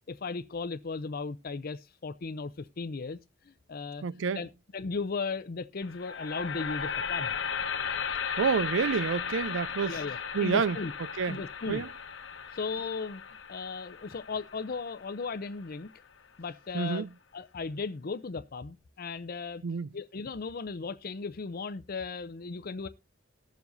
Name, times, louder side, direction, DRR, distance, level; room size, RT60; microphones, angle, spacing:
voice 1, 0.1-3.2 3.5-4.0 4.4-4.5 4.7-7.4 9.8-10.9 11.3-11.8 12.5-13.2 13.5-15.9 16.4-17.0 17.3-19.6 19.9-22.9, left 4 dB, 50° left, 0.5 m, -36 dB
voice 2, 4.0-4.4 8.4-10.0 10.3-10.8 11.2-11.4 11.7-11.9 16.7-17.1 19.6-19.9, right 5 dB, 70° right, 0.4 m, -28 dB
sound 1, 5.8-15.9, left 7 dB, 70° left, 1.1 m, -36 dB
19.5 x 7.2 x 2.6 m
head